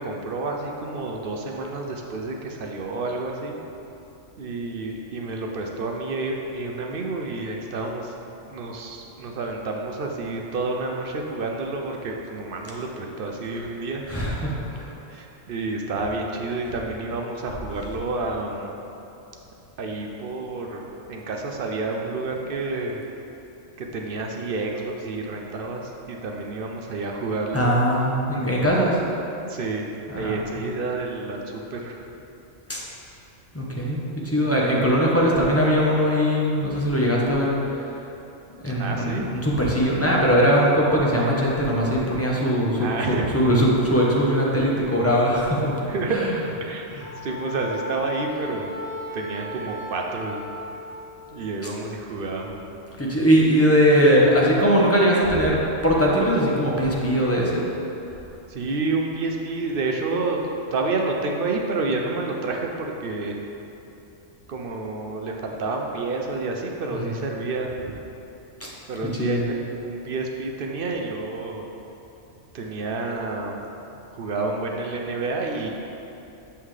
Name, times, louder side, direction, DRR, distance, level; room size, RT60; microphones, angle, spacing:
voice 1, 0.0-3.6 4.4-8.1 8.4-14.1 15.1-18.8 19.8-20.8 21.1-23.0 23.8-27.6 29.5-29.9 30.1-32.0 34.1-34.4 38.8-39.3 42.8-43.3 45.9-46.3 46.6-46.9 47.2-48.7 49.1-50.4 51.3-52.6 58.5-60.4 60.7-63.4 64.5-68.0 68.9-69.6 69.8-71.6 72.5-73.6 74.1-75.7, right 3 dB, 60° right, 1 dB, 0.7 m, -29 dB
voice 2, 14.1-14.9 27.5-29.0 30.1-30.4 32.7-32.8 33.5-37.5 38.6-45.8 46.1-46.2 46.9-47.1 53.0-57.6 66.9-67.1 68.6-68.7 69.2-69.4, equal, 15° left, -4 dB, 0.7 m, -20 dB
Wind instrument woodwind instrument, 47.0-51.4, left 2 dB, 60° left, 1.0 m, -36 dB
6.9 x 5.6 x 3.2 m, 2.9 s
omnidirectional pair, 1.3 m